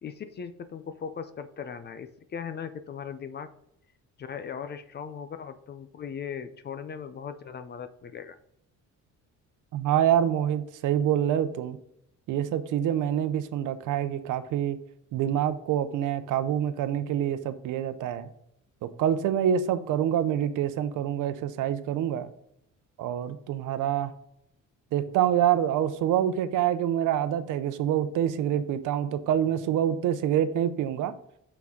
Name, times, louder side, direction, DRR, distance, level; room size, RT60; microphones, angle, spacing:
voice 1, 0.0-3.5 4.2-8.4, left 7 dB, 35° left, 10 dB, 0.5 m, -38 dB
voice 2, 9.7-11.8 12.3-14.8 15.1-18.3 19.0-22.3 23.0-24.1 24.9-31.1, right 10 dB, 70° right, 12 dB, 0.7 m, -26 dB
6.0 x 6.0 x 3.7 m, 0.76 s
cardioid pair, 140°, 32 cm